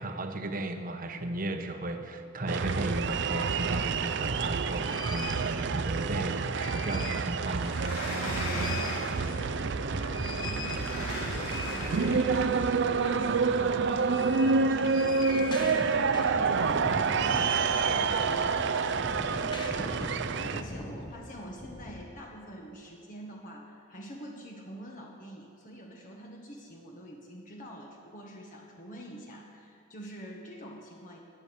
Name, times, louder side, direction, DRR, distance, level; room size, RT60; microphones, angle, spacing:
voice 1, 0.0-7.8, right 1 dB, 45° right, 6 dB, 1.0 m, -35 dB
sound 1, 2.5-20.6, right 5 dB, 65° right, 0.6 m, -28 dB
sound 2, 4.8-5.5 6.3-7.3 7.7-7.8 8.1-22.0, left 2 dB, 25° left, 1.1 m, -41 dB
Sliding door, 7.5-9.5 10.4-12.6, left 1 dB, 85° left, 4.7 m, -39 dB
voice 2, 8.1-31.2, equal, 45° left, 0 dB, 1.5 m, -45 dB
20.5 x 8.0 x 7.0 m, 2.5 s
head